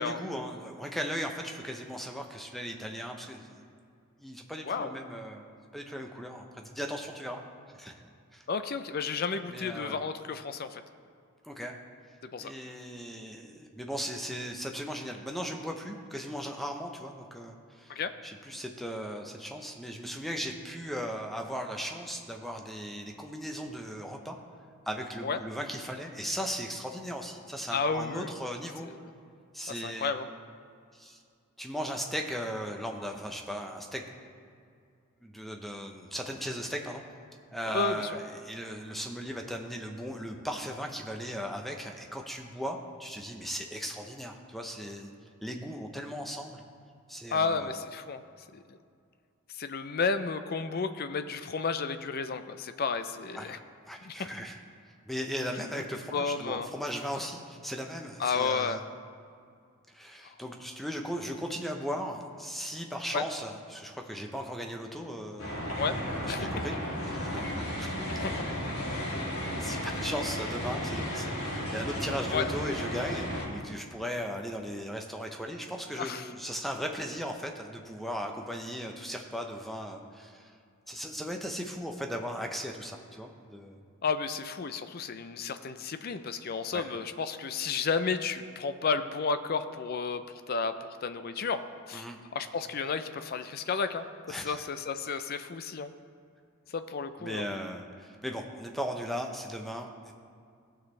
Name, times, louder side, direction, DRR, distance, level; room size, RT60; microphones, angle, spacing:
voice 1, 0.0-3.6 4.2-7.4 7.7-7.9 8.3-8.4 9.5-10.0 11.4-11.8 12.4-24.4 24.9-28.9 29.5-30.1 30.9-31.2 31.6-34.0 35.2-37.0 37.5-45.1 45.4-46.6 47.1-47.8 53.3-53.5 53.9-54.6 55.0-58.8 59.9-65.8 66.2-67.9 68.4-68.5 69.6-80.5 80.9-83.8 86.7-86.9 91.9-92.2 94.3-94.7 97.2-100.1, equal, ahead, 2 dB, 0.6 m, -37 dB
voice 2, 8.5-10.8 12.3-12.5 17.9-18.1 25.2-25.4 27.7-28.3 29.8-30.3 37.7-38.1 47.3-48.2 48.5-48.8 49.5-53.6 54.0-54.1 56.1-56.7 58.2-58.8 63.1-63.2 65.7-65.9 66.3-66.5 68.2-68.3 72.3-72.5 76.0-76.3 84.0-90.2 90.5-90.7 91.0-91.6 91.9-92.0 92.3-94.0 94.4-95.9 96.7-97.5, left 5 dB, 45° left, 10 dB, 0.4 m, -32 dB
sound 1, 65.4-73.4, equal, 85° left, 2.6 m, -34 dB
16.5 x 6.2 x 3.2 m, 2.3 s
head